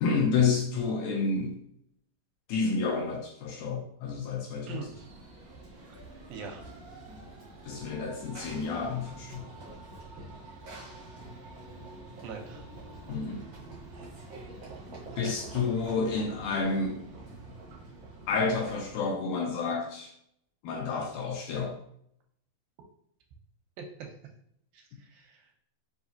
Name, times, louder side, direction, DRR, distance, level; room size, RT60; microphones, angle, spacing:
voice 1, 0.0-1.6 2.5-4.8 7.6-9.5 13.1-13.5 15.2-17.1 18.3-20.1 20.6-21.8, left 4 dB, 80° left, 0 dB, 2.0 m, -30 dB
voice 2, 4.7-5.1 6.3-6.6 11.5-11.6 12.2-12.7 23.8-24.1 24.7-25.5, right 5 dB, 85° right, 3 dB, 2.4 m, -42 dB
Run / Train, 4.8-19.3, right 2 dB, 70° right, 1.1 m, -46 dB
5.8 x 2.7 x 2.7 m, 0.69 s
omnidirectional pair, 4.1 m